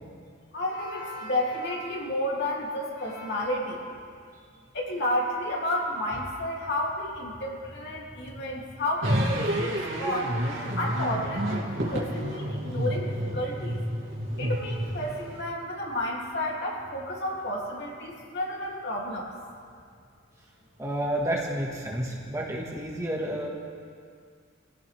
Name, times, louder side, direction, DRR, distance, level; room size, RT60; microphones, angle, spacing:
voice 1, 0.5-3.8 4.7-10.3 10.8-13.8 14.4-19.3, left 1 dB, 55° left, -3 dB, 2.9 m, -31 dB
sound 1, 9.0-15.4, equal, 65° right, 2.7 m, -29 dB
voice 2, 20.8-23.5, right 1 dB, 15° right, -2 dB, 1.7 m, -30 dB
24.0 x 15.5 x 3.5 m, 2.2 s
head